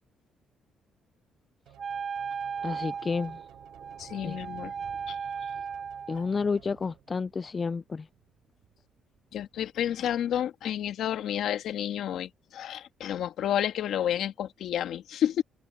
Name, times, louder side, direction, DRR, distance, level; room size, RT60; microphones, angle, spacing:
sound 1, 1.7-7.4, right 14 dB, 90° right, 7.3 m, -57 dB
Wind instrument woodwind instrument, 1.8-6.3, right 6 dB, 40° right, 0.4 m, -36 dB
Thunder, 2.5-9.6, right 10 dB, 70° right, 4.3 m, -56 dB
voice 1, 2.6-3.4 4.2-4.4 6.1-8.1, left 4 dB, 30° left, 0.4 m, -30 dB
voice 2, 4.0-4.7 5.1-5.2 9.3-15.4, left 10 dB, 70° left, 1.9 m, -30 dB
cardioid pair, 120°, 0 cm